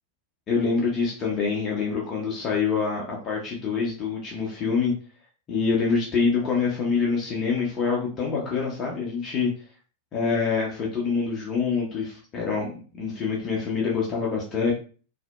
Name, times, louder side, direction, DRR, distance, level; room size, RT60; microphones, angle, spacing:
voice 1, 0.5-4.9 5.5-9.5 10.1-12.7 12.9-14.7, left 5 dB, 30° left, -3 dB, 0.6 m, -25 dB
2.7 x 2.1 x 2.2 m, 0.39 s
figure-of-eight pair, 90°, 0 cm